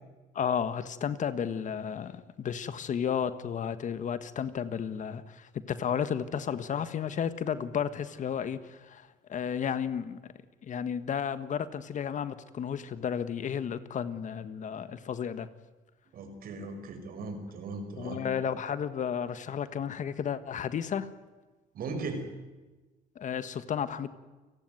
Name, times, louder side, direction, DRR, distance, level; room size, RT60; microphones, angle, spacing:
voice 1, 0.3-10.3 10.6-15.5 18.0-21.1 23.1-24.1, left 8 dB, 45° left, 13 dB, 1.6 m, -33 dB
voice 2, 16.1-18.2 21.7-22.2, right 3 dB, 60° right, 7 dB, 5.7 m, -38 dB
29.5 x 17.5 x 9.4 m, 1.2 s
cardioid pair, 110°, 17 cm